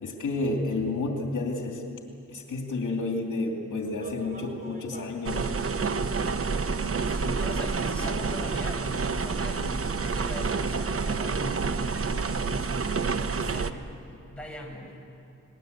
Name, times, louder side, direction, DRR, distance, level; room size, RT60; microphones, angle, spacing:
voice 1, 0.0-1.8 2.3-5.5, left 2 dB, 75° left, 1 dB, 2.7 m, -30 dB
sound 1, 3.9-5.2 6.2-6.3 7.0-7.1 7.6-7.7 8.3-8.4 8.9-9.1 9.4-9.5, right 2 dB, 30° right, 2.9 m, -42 dB
sound 2, 5.2-13.7, right 4 dB, 45° right, 0.9 m, -28 dB
voice 2, 6.7-14.0 14.3-14.9, left 1 dB, 5° left, 0 dB, 5.1 m, -41 dB
28.5 x 20.5 x 8.2 m, 2.6 s
wide cardioid pair, 120°, 31 cm